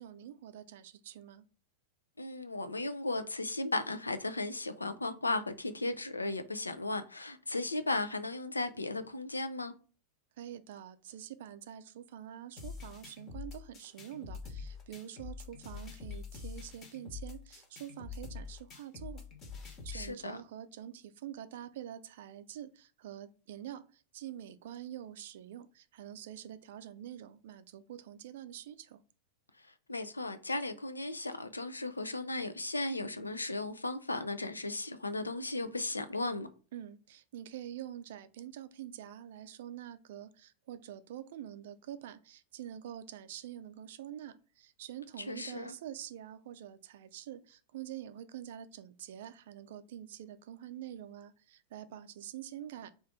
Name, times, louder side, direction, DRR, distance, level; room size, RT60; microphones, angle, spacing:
voice 1, 0.0-1.4 10.4-19.2 19.6-29.0 36.7-52.9, right 11 dB, 55° right, 0.4 m, -46 dB
voice 2, 2.2-9.7 19.9-20.4 29.9-36.5 45.2-45.7, left 2 dB, 80° left, 0.4 m, -36 dB
sound 1, 12.6-20.1, left 5 dB, 30° left, 1.0 m, -45 dB
3.2 x 2.5 x 3.6 m
figure-of-eight pair, 90°, 0 cm